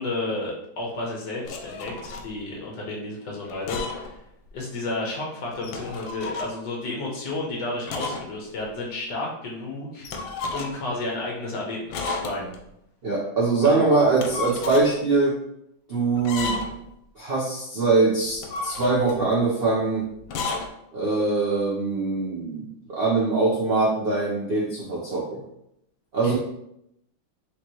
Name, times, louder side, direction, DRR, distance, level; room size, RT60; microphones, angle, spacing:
voice 1, 0.0-4.2 4.5-10.1 10.5-12.5 13.6-13.8 26.2-26.4, left 2 dB, 65° left, -2 dB, 1.6 m, -32 dB
sound 1, 1.4-2.3 3.5-4.2 4.5-4.6 5.5-6.5 7.9-8.3 8.6-8.7 10.0-10.9 11.9-12.6 14.0-14.9 16.2-16.9 18.2-19.2 20.2-20.7, left 3 dB, 90° left, 1.4 m, -32 dB
voice 2, 13.0-15.3 15.9-16.6 17.2-20.1 20.9-25.4 26.1-26.3, right 3 dB, 55° right, -6 dB, 0.6 m, -23 dB
5.0 x 3.0 x 3.0 m, 0.79 s
omnidirectional pair, 2.1 m